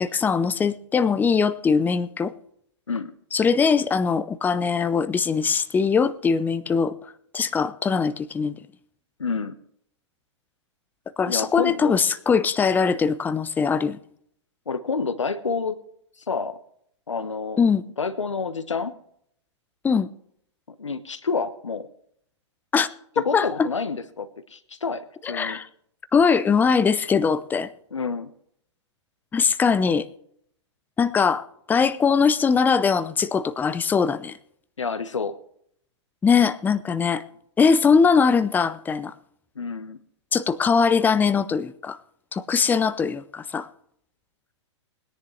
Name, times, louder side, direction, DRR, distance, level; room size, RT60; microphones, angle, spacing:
voice 1, 0.0-2.3 3.3-6.9 7.3-8.6 11.2-14.0 17.6-17.9 19.8-20.1 22.7-22.9 23.2-23.7 25.2-25.7 26.1-27.7 29.3-30.1 31.0-34.4 36.2-37.2 37.6-39.1 40.3-42.0 42.3-43.7, left 5 dB, 10° left, 13 dB, 0.7 m, -21 dB
voice 2, 9.2-9.6 11.3-12.0 14.7-15.8 16.3-16.6 17.1-17.6 18.0-18.9 20.8-21.9 23.2-25.6 27.9-28.3 34.8-35.3 39.5-40.0, left 5 dB, 80° left, 11 dB, 1.3 m, -28 dB
20.5 x 10.5 x 3.2 m, 0.68 s
figure-of-eight pair, 110°, 16 cm